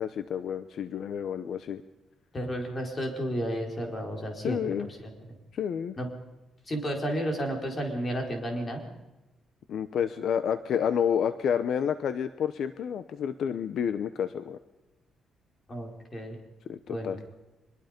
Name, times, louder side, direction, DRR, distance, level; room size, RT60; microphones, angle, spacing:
voice 1, 0.0-1.8 4.4-4.9 5.5-6.0 9.7-14.6 16.7-17.2, left 8 dB, 65° left, 12 dB, 0.8 m, -29 dB
voice 2, 2.3-5.1 6.0-6.1 6.6-8.9 15.7-16.4 16.9-17.2, equal, 25° left, 2 dB, 4.7 m, -32 dB
24.5 x 21.5 x 5.3 m, 1.0 s
cardioid pair, 130°, 0 cm